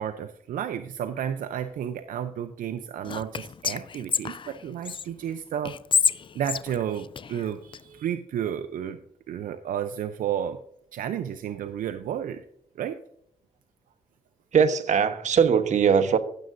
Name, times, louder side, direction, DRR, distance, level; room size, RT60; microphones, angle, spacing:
voice 1, 0.0-5.7 6.3-9.0 9.3-10.6 10.9-12.4 12.8-13.0, right 9 dB, 80° right, 9 dB, 0.6 m, -32 dB
Whispering, 3.0-5.0 5.6-7.8, left 6 dB, 35° left, 0.4 m, -28 dB
voice 2, 14.5-16.2, right 7 dB, 60° right, 9 dB, 1.1 m, -20 dB
15.5 x 7.6 x 2.6 m, 0.70 s
cardioid pair, 65°, 14 cm